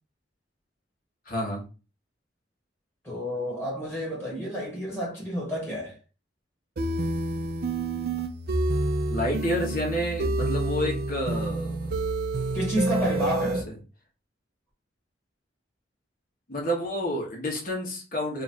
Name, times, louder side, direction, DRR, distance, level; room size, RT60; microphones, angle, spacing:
voice 1, 1.2-1.6 9.1-11.9 13.0-13.8 16.5-18.4, equal, 50° left, 1.2 m, -30 dB
voice 2, 3.0-6.0 12.5-13.7, equal, 10° left, 1.4 m, -30 dB
sound 1, 6.8-13.6, right 2 dB, 55° right, 0.5 m, -28 dB
2.9 x 2.5 x 4.3 m
head